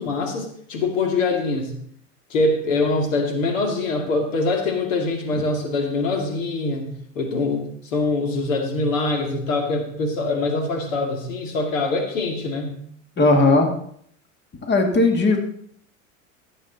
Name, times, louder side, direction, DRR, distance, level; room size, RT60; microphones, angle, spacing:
voice 1, 0.0-1.7 2.3-6.9 7.1-12.8, left 3 dB, 75° left, 3 dB, 2.6 m, -24 dB
voice 2, 13.2-13.7 14.6-15.4, left 2 dB, 25° left, 3 dB, 2.2 m, -17 dB
16.5 x 7.7 x 4.1 m, 0.64 s
hypercardioid pair, 90°, 39 cm